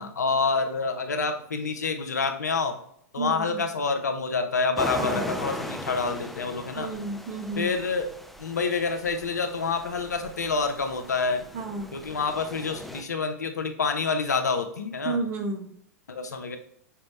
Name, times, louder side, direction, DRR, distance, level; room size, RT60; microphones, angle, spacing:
voice 1, 0.0-2.8 3.1-6.9 7.6-8.1 8.4-11.4 11.9-15.2 16.1-16.6, left 4 dB, 85° left, 6 dB, 0.6 m, -27 dB
voice 2, 3.2-3.6 5.0-5.4 6.7-7.7 11.5-11.9 15.0-15.7, right 3 dB, 60° right, 3 dB, 0.9 m, -32 dB
sound 1, 4.8-13.0, left 1 dB, ahead, 0.3 m, -38 dB
5.5 x 2.1 x 3.1 m, 0.67 s
hypercardioid pair, 100°, 9 cm